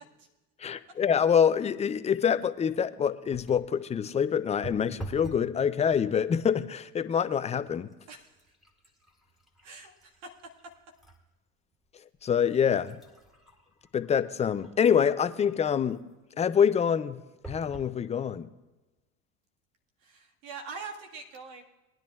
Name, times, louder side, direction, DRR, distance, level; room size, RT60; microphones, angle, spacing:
voice 1, 0.6-7.9 12.2-13.0 13.9-16.0 16.4-17.2 17.5-18.5, left 7 dB, 15° left, 13 dB, 0.4 m, -26 dB
sound 1, 3.3-3.7 4.6-5.5 5.9-6.4 7.1-7.3 7.6-11.2 11.7-11.8 12.5-15.2 17.4-17.9 18.6-18.7 19.0-19.1, right 2 dB, ahead, 2.0 m, -47 dB
voice 2, 8.1-8.4 9.6-10.3 20.0-21.6, right 4 dB, 75° right, 1 dB, 1.8 m, -43 dB
19.5 x 10.5 x 2.4 m, 1.1 s
hypercardioid pair, 80°, 42 cm